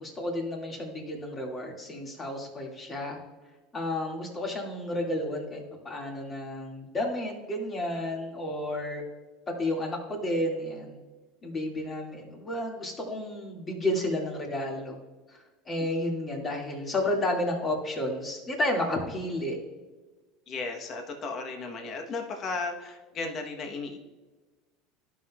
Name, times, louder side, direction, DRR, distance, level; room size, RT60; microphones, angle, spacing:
voice 1, 0.0-3.2 3.7-9.0 9.6-11.0 11.4-15.0 15.3-15.4 15.7-19.6, left 1 dB, 25° left, 0 dB, 2.3 m, -31 dB
voice 2, 20.5-24.0, left 3 dB, 45° left, 3 dB, 1.2 m, -35 dB
12.5 x 5.8 x 2.4 m, 1.2 s
supercardioid pair, 110°, 0 cm